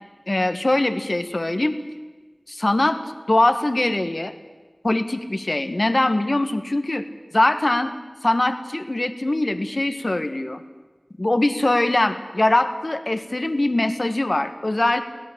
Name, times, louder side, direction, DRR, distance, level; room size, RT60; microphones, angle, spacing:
voice 1, 0.3-1.7 2.5-3.0 3.3-4.3 4.8-7.0 7.3-7.9 8.2-10.6 11.2-15.0, left 2 dB, 55° left, 8 dB, 1.5 m, -22 dB
24.0 x 17.5 x 7.4 m, 1.3 s
wide cardioid pair, 45°, 0 cm